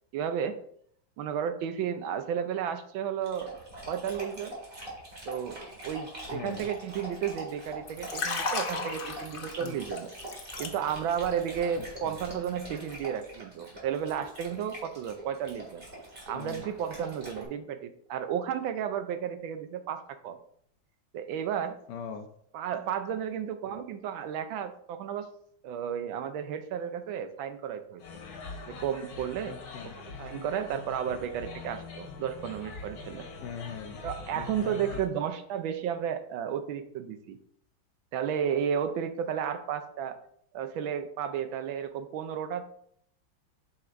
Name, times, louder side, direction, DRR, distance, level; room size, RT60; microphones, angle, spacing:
voice 1, 0.1-0.6 1.2-3.6 3.9-4.5 5.3-10.1 10.6-15.8 16.3-20.4 21.1-21.8 22.5-25.3 25.6-28.0 28.6-29.5 30.0-33.3 34.0-37.4 38.1-40.2 40.5-42.6, right 8 dB, 85° right, 9 dB, 1.4 m, -33 dB
Dog, 3.2-17.4, right 1 dB, 25° right, 2.3 m, -43 dB
voice 2, 6.3-6.7 9.6-9.8 11.7-12.2 16.3-16.7 21.9-22.3 29.4-30.0 33.4-34.0 34.3-35.0, left 7 dB, 70° left, 6 dB, 1.1 m, -41 dB
Liquid, 7.8-11.2 11.5-11.8, left 4 dB, 50° left, 0.6 m, -35 dB
sound 1, 28.0-35.1, left 4 dB, 90° left, 1.9 m, -43 dB
7.8 x 5.8 x 2.6 m, 0.65 s
omnidirectional pair, 2.2 m